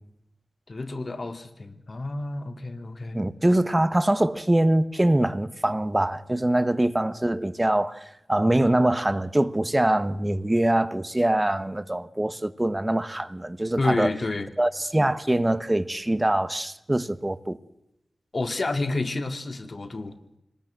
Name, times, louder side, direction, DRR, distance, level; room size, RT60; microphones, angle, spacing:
voice 1, 0.7-3.2 13.8-14.5 18.3-20.2, left 2 dB, 50° left, 2.4 m, -29 dB
voice 2, 3.1-14.1 14.6-17.6, right 1 dB, 20° right, 1.2 m, -23 dB
25.5 x 20.0 x 7.7 m
wide cardioid pair, 75°, 0 cm